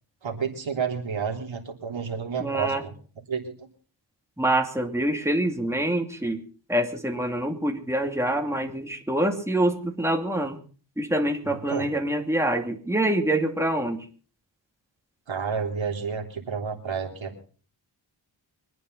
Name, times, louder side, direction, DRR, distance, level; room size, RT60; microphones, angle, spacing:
voice 1, 0.2-2.9 3.3-3.7 11.4-11.9 15.3-17.4, right 6 dB, 90° right, 1 dB, 3.5 m, -30 dB
voice 2, 2.4-2.8 4.4-6.4 6.7-10.6 11.0-14.0, right 1 dB, 5° right, 3 dB, 2.7 m, -25 dB
24.5 x 9.5 x 5.6 m, 0.41 s
wide cardioid pair, 75°, 45 cm